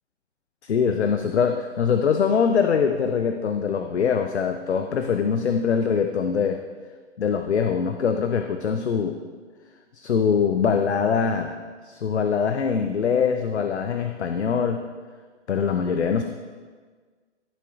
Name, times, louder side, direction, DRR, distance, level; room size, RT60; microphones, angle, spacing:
voice 1, 0.6-6.6 7.2-9.2 9.9-11.6 11.8-14.8 15.5-16.2, left 6 dB, 65° left, 6 dB, 0.7 m, -23 dB
14.5 x 7.8 x 2.4 m, 1.5 s
figure-of-eight pair, 130°, 35 cm